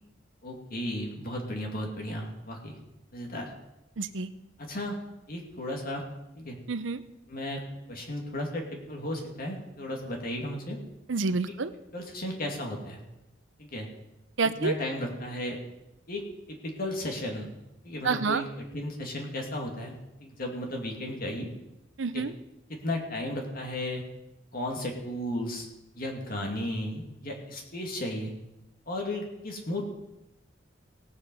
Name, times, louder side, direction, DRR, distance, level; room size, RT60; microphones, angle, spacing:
voice 1, 0.4-2.8 3.1-3.5 4.6-5.0 5.3-6.0 6.4-6.6 7.3-7.6 7.9-10.8 11.5-11.6 11.9-13.0 13.6-13.9 14.6-15.6 16.1-17.5 17.8-18.5 18.7-21.5 22.1-22.3 22.7-24.0 24.5-25.7 25.9-28.3 28.9-29.9, left 1 dB, 50° left, 1 dB, 2.5 m, -34 dB
voice 2, 4.0-4.3 6.7-7.0 11.1-11.7 14.4-14.7 18.0-18.4 22.0-22.3, right 4 dB, 80° right, 13 dB, 0.7 m, -28 dB
17.0 x 8.0 x 5.6 m, 0.91 s
head